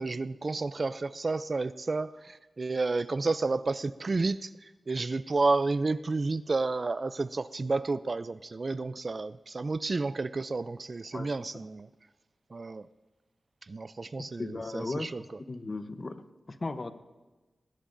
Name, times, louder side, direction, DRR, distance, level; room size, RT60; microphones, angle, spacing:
voice 1, 0.0-4.5 4.9-11.9 12.5-12.9 13.7-15.2, right 3 dB, 45° right, 15 dB, 0.3 m, -31 dB
voice 2, 11.1-11.7 14.2-15.1 15.5-16.2 16.5-16.9, left 3 dB, 40° left, 10 dB, 0.8 m, -37 dB
19.5 x 18.5 x 2.6 m, 1.2 s
wide cardioid pair, 90°, 0 cm